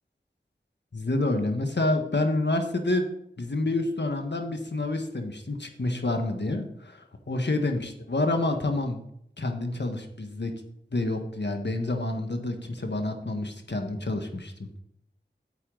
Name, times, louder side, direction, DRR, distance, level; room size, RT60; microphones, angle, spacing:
voice 1, 0.9-3.0 3.4-9.0 9.4-10.5 10.9-14.8, left 2 dB, 65° left, 5 dB, 1.5 m, -28 dB
9.0 x 8.2 x 3.9 m, 0.73 s
wide cardioid pair, 40°, 19 cm